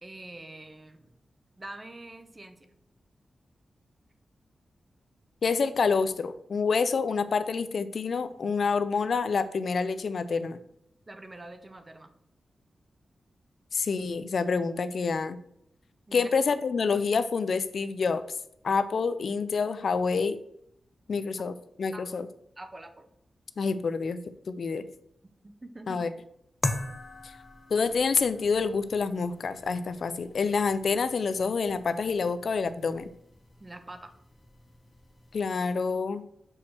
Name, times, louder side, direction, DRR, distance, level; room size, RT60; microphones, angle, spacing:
voice 1, 0.0-1.1 1.6-2.6 11.1-12.1 16.1-16.3 21.9-22.3 22.6-23.1 25.4-26.0 33.6-34.1, right 2 dB, 25° right, 8 dB, 0.9 m, -45 dB
voice 2, 5.4-10.6 13.7-15.4 16.1-18.3 18.6-20.4 21.1-22.3 23.6-24.2 24.5-24.9 25.9-26.1 27.2-27.3 27.7-33.1 35.3-36.2, left 5 dB, 65° left, 12 dB, 0.5 m, -27 dB
sound 1, 26.6-35.5, left 2 dB, 25° left, 0.8 m, -41 dB
6.3 x 4.3 x 6.3 m, 0.74 s
wide cardioid pair, 95°, 0 cm